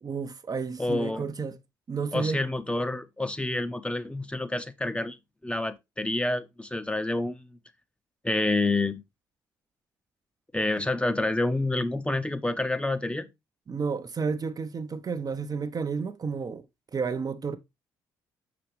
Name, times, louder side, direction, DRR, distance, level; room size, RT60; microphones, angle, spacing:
voice 1, 0.0-1.6 1.9-2.4 13.7-16.6 16.9-17.6, right 5 dB, 40° right, 0.8 m, -31 dB
voice 2, 0.8-1.3 2.1-5.2 5.4-7.6 8.2-9.0 10.5-13.3, left 2 dB, 10° left, 0.9 m, -28 dB
6.6 x 6.0 x 3.3 m
hypercardioid pair, 45°, 10 cm